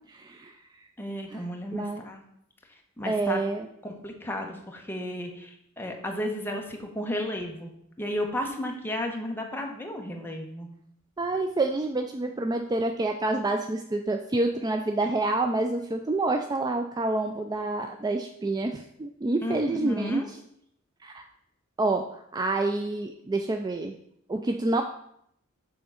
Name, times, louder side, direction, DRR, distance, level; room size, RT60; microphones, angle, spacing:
voice 1, 0.1-0.9 1.3-1.4 1.7-2.1 3.1-3.7 11.2-20.4 21.0-21.2 21.8-23.9 24.3-24.8, right 2 dB, 20° right, 5 dB, 0.3 m, -28 dB
voice 2, 1.0-2.2 3.0-3.4 3.8-10.7 19.4-20.3, left 1 dB, 10° left, 1 dB, 1.0 m, -33 dB
6.8 x 3.7 x 5.6 m, 0.73 s
head